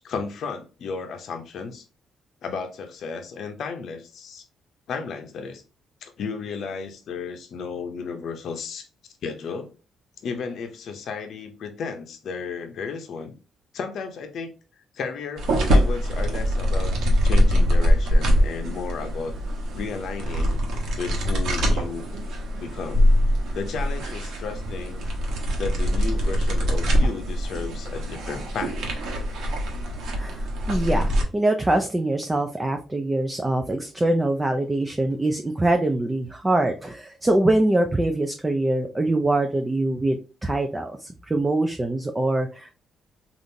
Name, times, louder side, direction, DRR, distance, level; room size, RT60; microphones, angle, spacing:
voice 1, 0.0-1.8 2.4-4.4 4.9-5.6 6.0-8.9 9.2-9.7 10.2-13.3 13.7-14.5 14.9-16.9 17.2-19.3 19.7-20.6 21.0-22.1 22.6-23.1 23.5-25.0 25.6-28.8, left 5 dB, 65° left, 0.6 m, -33 dB
sound 1, 15.4-31.2, equal, 75° right, 0.9 m, -23 dB
voice 2, 30.2-42.8, right 2 dB, 20° right, 0.4 m, -24 dB
3.5 x 2.5 x 2.7 m
cardioid pair, 90°, 0 cm